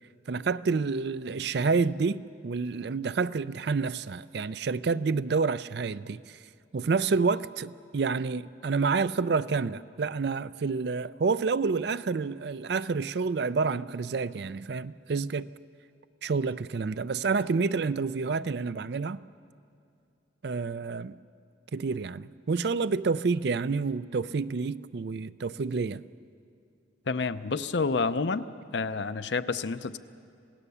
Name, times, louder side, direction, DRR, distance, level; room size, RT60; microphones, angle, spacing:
voice 1, 0.3-6.4 6.7-15.5 16.2-19.2 20.4-21.2 21.7-26.0, right 4 dB, 60° right, 0.4 m, -28 dB
voice 2, 27.1-28.4 28.7-30.0, left 4 dB, 70° left, 0.6 m, -29 dB
27.0 x 17.5 x 6.9 m
head